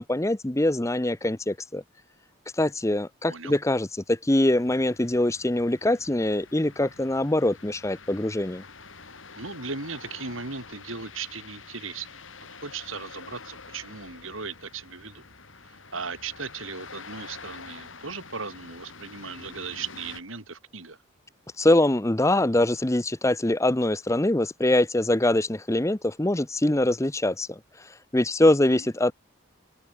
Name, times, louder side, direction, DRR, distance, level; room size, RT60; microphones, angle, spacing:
voice 1, 0.0-1.8 2.6-8.6 21.6-27.6 28.1-29.1, left 1 dB, 15° left, 0.8 m, -23 dB
voice 2, 3.3-3.6 9.3-15.2 15.6-21.0 28.4-28.9, right 5 dB, 90° right, 5.5 m, -37 dB
sound 1, 4.5-20.2, left 4 dB, 80° left, 5.4 m, -47 dB
open air
head